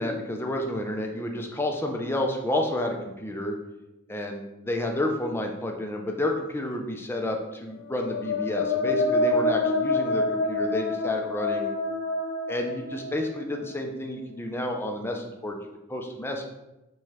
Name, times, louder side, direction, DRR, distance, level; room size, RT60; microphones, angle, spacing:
voice 1, 0.0-3.6 4.1-11.7 12.5-16.5, left 1 dB, 10° left, 2 dB, 0.5 m, -30 dB
sound 1, 7.9-13.7, left 2 dB, 65° left, 0.4 m, -27 dB
4.9 x 2.3 x 4.1 m, 0.96 s
head